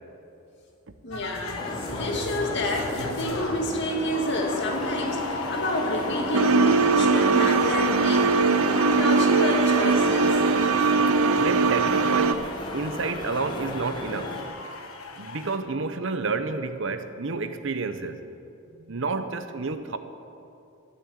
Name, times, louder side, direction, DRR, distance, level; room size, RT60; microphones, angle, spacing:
voice 1, 1.0-10.4, left 1 dB, 55° left, 1 dB, 2.1 m, -29 dB
sound 1, 1.1-15.6, left 3 dB, 85° left, 1.4 m, -36 dB
sound 2, 1.6-14.4, left 1 dB, 20° left, 1.4 m, -35 dB
sound 3, 6.3-12.3, right 4 dB, 90° right, 0.6 m, -21 dB
voice 2, 11.4-14.4 15.2-18.2 18.8-20.0, right 4 dB, 60° right, 10 dB, 0.8 m, -30 dB
13.5 x 8.7 x 8.9 m, 2.7 s
head